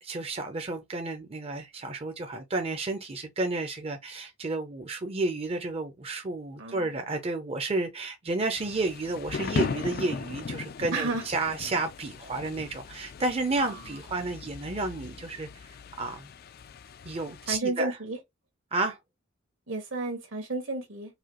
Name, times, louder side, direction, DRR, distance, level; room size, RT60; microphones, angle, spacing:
voice 1, 0.0-15.7 16.0-16.3 17.0-17.9 18.7-19.0, right 2 dB, 30° right, 0.5 m, -31 dB
voice 2, 6.6-6.9 10.9-11.3 13.6-13.9 17.5-18.2 19.7-21.1, right 3 dB, 75° right, 1.5 m, -32 dB
Thunder / Rain, 8.5-17.6, left 5 dB, 50° left, 0.3 m, -38 dB
4.8 x 2.3 x 2.9 m
head